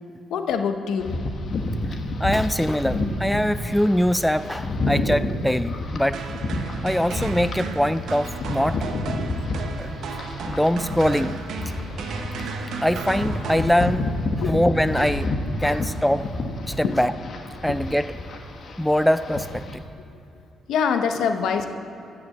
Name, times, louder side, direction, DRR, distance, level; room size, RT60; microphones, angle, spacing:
voice 1, 0.3-1.2 9.2-9.4 14.4-14.7 16.8-17.0 17.7-17.8 20.3-20.4 20.7-21.7, left 6 dB, 80° left, 7 dB, 0.8 m, -25 dB
sound 1, 1.0-7.6 8.0-19.8, left 2 dB, 55° left, 1.3 m, -29 dB
voice 2, 2.2-6.2 6.8-8.8 9.8-9.9 10.5-11.4 12.8-14.1 14.5-15.3 15.6-16.3 16.7-17.1 17.6-18.1 18.8-19.6, equal, 5° left, 13 dB, 0.3 m, -22 dB
sound 2, 6.1-14.3, right 4 dB, 75° right, 0.9 m, -34 dB
14.0 x 5.9 x 7.6 m, 2.7 s
cardioid pair, 90°, 0 cm